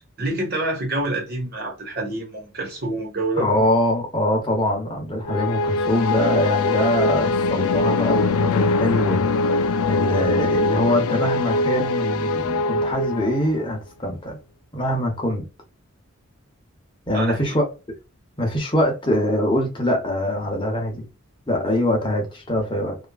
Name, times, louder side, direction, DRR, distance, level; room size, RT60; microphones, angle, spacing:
voice 1, 0.2-3.5 17.1-17.5, right 2 dB, 45° right, 1.1 m, -27 dB
voice 2, 3.4-14.4 14.7-15.4 17.1-17.6 18.4-21.0 21.5-23.0, left 1 dB, 20° left, 0.8 m, -23 dB
sound 1, 5.2-13.7, left 3 dB, 80° left, 0.4 m, -22 dB
2.9 x 2.4 x 2.3 m
head